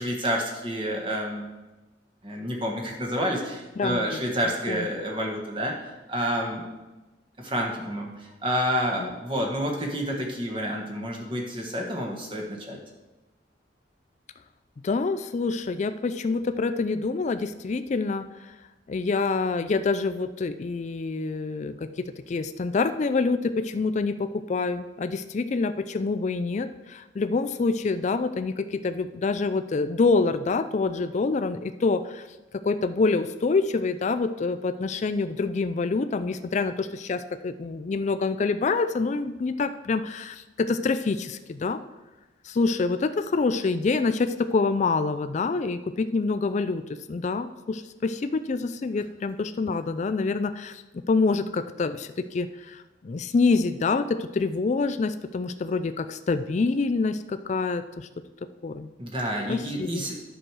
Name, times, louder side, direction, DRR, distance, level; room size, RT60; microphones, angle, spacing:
voice 1, 0.0-1.5 2.2-5.8 6.1-6.7 7.4-12.8 59.0-60.2, equal, 30° right, 0 dB, 1.3 m, -29 dB
voice 2, 3.8-4.2 4.7-4.8 9.0-9.1 14.8-18.6 18.9-21.9 22.3-32.3 32.5-41.8 42.4-46.8 47.1-50.8 51.1-58.1 58.6-58.9 59.5-60.1, left 4 dB, 40° left, 10 dB, 0.3 m, -26 dB
10.0 x 6.2 x 4.7 m, 1.1 s
head